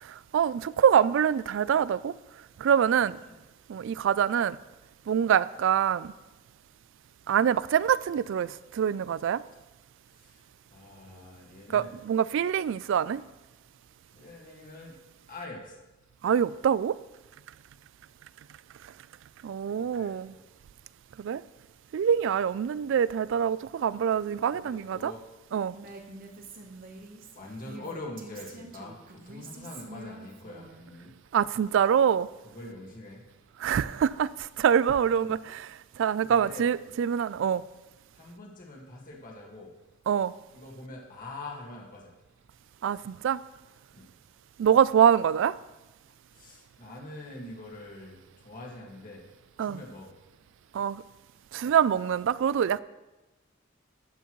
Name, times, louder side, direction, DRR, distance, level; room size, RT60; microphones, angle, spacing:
voice 1, 0.0-2.1 2.6-3.2 3.7-4.6 5.1-6.1 7.3-9.4 11.7-13.2 16.2-17.0 19.4-20.3 21.2-21.4 21.9-25.1 25.5-25.7 31.3-32.3 33.6-35.7 36.0-37.6 40.1-40.3 42.8-43.4 44.6-45.6 49.6-49.8 50.7-51.0 51.5-52.8, right 8 dB, 65° right, 0.3 m, -25 dB
voice 2, 3.0-3.4 10.1-10.4 10.7-11.9 14.1-15.0 15.3-15.8 19.6-20.4 24.5-25.2 27.4-31.1 32.4-33.2 35.1-35.4 36.3-36.7 38.1-39.7 40.5-42.1 43.9-44.1 46.3-49.2 49.6-50.1, left 2 dB, 45° left, 1.8 m, -44 dB
Female speech woman speaking, 25.7-30.8, right 2 dB, 45° right, 1.1 m, -46 dB
12.5 x 8.1 x 3.1 m
head